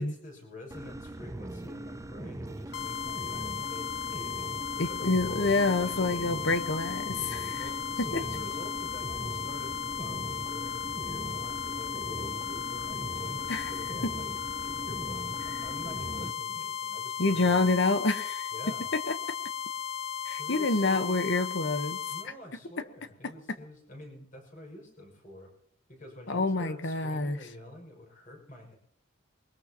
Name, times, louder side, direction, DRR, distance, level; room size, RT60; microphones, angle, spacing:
voice 1, 0.0-4.3 4.7-6.3 7.4-14.3 14.6-17.7 18.5-18.9 20.4-21.2 22.1-25.5 25.9-28.7, left 1 dB, 40° left, 1 dB, 6.1 m, -47 dB
sound 1, 0.7-16.3, right 1 dB, 15° right, 0.6 m, -40 dB
sound 2, 2.7-22.3, left 8 dB, 85° left, 1.6 m, -36 dB
voice 2, 4.8-7.6 13.5-13.7 17.2-18.5 18.9-19.1 20.2-22.0 26.3-27.4, left 3 dB, 60° left, 10 dB, 1.1 m, -27 dB
22.0 x 20.5 x 2.9 m, 0.70 s
head